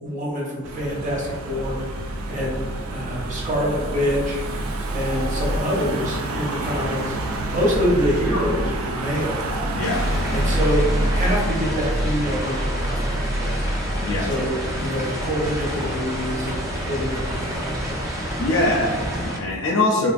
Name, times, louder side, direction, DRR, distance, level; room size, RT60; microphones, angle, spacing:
voice 1, 0.0-1.8 2.3-4.4 4.9-7.1 7.5-9.4 10.3-13.7 14.2-18.1, equal, 35° right, -4 dB, 0.8 m, -26 dB
Car passing by / Engine, 0.6-19.3, right 1 dB, 85° right, 0.4 m, -28 dB
voice 2, 9.7-10.5 14.0-14.3 18.4-20.1, left 2 dB, 65° left, 0 dB, 0.4 m, -23 dB
sound 1, 9.8-19.4, equal, 15° right, 0.4 m, -29 dB
3.4 x 2.4 x 2.4 m, 1.3 s
head